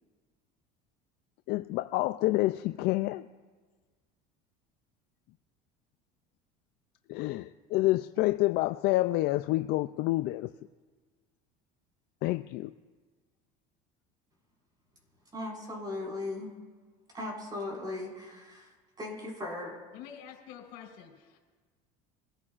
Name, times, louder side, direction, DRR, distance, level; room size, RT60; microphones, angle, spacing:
voice 1, 1.5-3.3 7.1-10.5 12.2-12.7, left 18 dB, 60° left, 10 dB, 0.4 m, -28 dB
voice 2, 15.3-16.5 17.1-19.8, left 2 dB, 20° right, -2 dB, 5.1 m, -38 dB
voice 3, 19.9-21.4, left 9 dB, 80° left, 0 dB, 4.1 m, -47 dB
24.5 x 14.5 x 2.5 m, 1.4 s
supercardioid pair, 125°, 19 cm